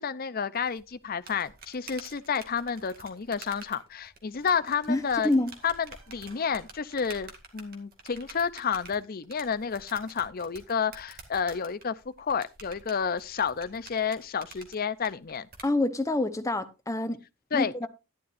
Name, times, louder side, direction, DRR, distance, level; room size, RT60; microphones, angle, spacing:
voice 1, 0.0-5.3 5.6-5.7 6.1-15.5 17.5-17.7, left 6 dB, 40° left, 0.6 m, -30 dB
sound 1, 0.6-15.7, right 4 dB, 45° right, 2.2 m, -49 dB
sound 2, 4.4-7.3, right 2 dB, 65° right, 5.2 m, -59 dB
voice 2, 4.9-5.5 15.6-17.2 17.5-17.9, left 2 dB, 15° left, 0.8 m, -27 dB
11.5 x 11.0 x 2.6 m
head